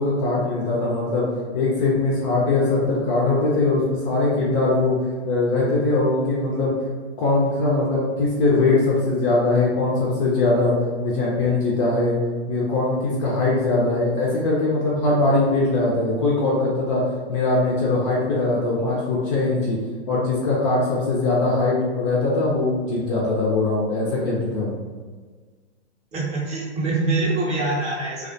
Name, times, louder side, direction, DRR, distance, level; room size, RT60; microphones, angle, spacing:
voice 1, 0.0-6.7 7.2-10.7 11.0-12.2 12.5-17.0 17.3-19.8 20.1-24.8, left 2 dB, 30° left, -5 dB, 0.4 m, -21 dB
voice 2, 26.1-28.3, right 2 dB, 20° right, -5 dB, 0.6 m, -24 dB
2.3 x 2.2 x 2.5 m, 1.5 s
hypercardioid pair, 125°, 34 cm